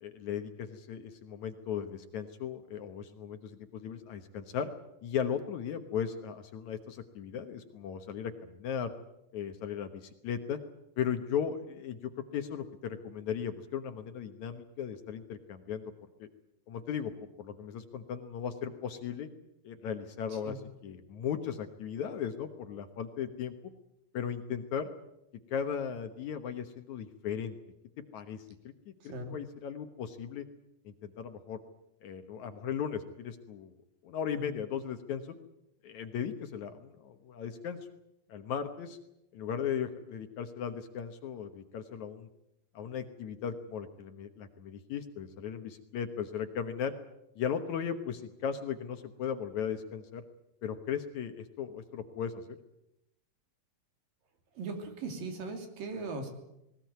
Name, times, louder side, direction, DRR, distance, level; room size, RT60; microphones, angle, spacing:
voice 1, 0.0-4.7 5.0-8.9 9.3-10.6 11.0-15.9 16.2-16.3 16.7-19.3 19.6-20.6 20.8-23.5 24.1-24.9 25.5-27.6 28.1-30.5 30.9-31.6 32.0-33.7 34.0-35.3 35.8-37.8 38.3-39.0 39.3-42.3 42.7-46.9 47.4-50.2 50.6-52.6, left 8 dB, 65° left, 8 dB, 2.2 m, -37 dB
voice 2, 29.0-29.4 34.3-34.5 54.5-56.3, right 3 dB, 70° right, 5 dB, 4.6 m, -39 dB
20.0 x 19.5 x 9.4 m, 0.87 s
omnidirectional pair, 4.1 m